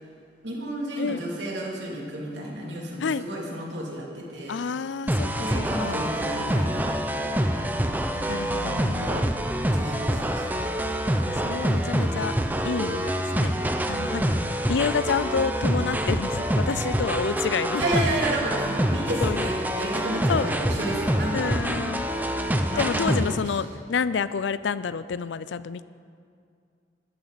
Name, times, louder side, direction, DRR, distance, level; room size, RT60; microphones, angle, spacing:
voice 1, 0.4-4.6 5.4-6.9 7.1-7.7 9.6-10.6 13.8-14.5 17.8-21.5 22.7-23.6, right 1 dB, 85° right, -3 dB, 2.8 m, -32 dB
voice 2, 4.5-6.1 8.3-9.3 11.3-12.3 12.6-13.6 13.9-14.2 14.7-18.0 19.2-19.5 20.3-20.5 21.3-22.1 22.8-25.8, left 5 dB, 90° left, 16 dB, 0.4 m, -29 dB
sound 1, 5.1-23.4, right 1 dB, 10° right, 0.6 m, -26 dB
14.5 x 12.5 x 4.1 m, 2.3 s
head